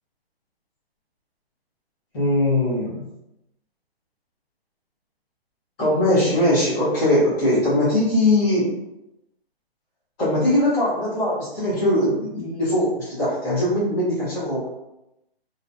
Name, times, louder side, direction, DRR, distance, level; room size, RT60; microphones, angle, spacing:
voice 1, 2.1-3.1 5.8-8.7 10.2-14.7, left 1 dB, 5° left, -12 dB, 0.5 m, -21 dB
2.4 x 2.1 x 2.5 m, 0.88 s
hypercardioid pair, 155°, 31 cm